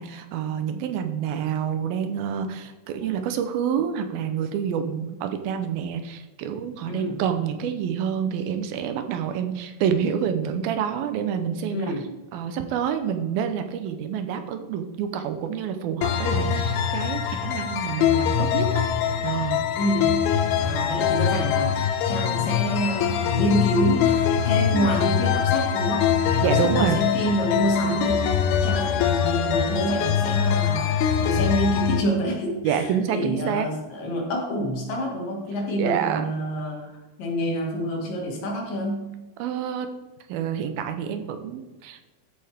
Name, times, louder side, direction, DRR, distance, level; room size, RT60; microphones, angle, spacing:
voice 1, 0.0-12.0 12.3-18.8 19.2-19.7 24.7-24.9 26.4-27.0 32.6-33.7 35.8-36.3 39.4-39.9 40.3-42.1, right 8 dB, 80° right, 8 dB, 2.6 m, -27 dB
voice 2, 6.9-7.2 11.7-12.0 19.8-20.2 20.6-28.4 28.6-30.9 31.2-39.1, equal, 65° left, 0 dB, 3.7 m, -27 dB
sound 1, 16.0-32.0, left 8 dB, 85° left, 2.5 m, -23 dB
13.5 x 8.4 x 3.6 m, 1.1 s
omnidirectional pair, 4.4 m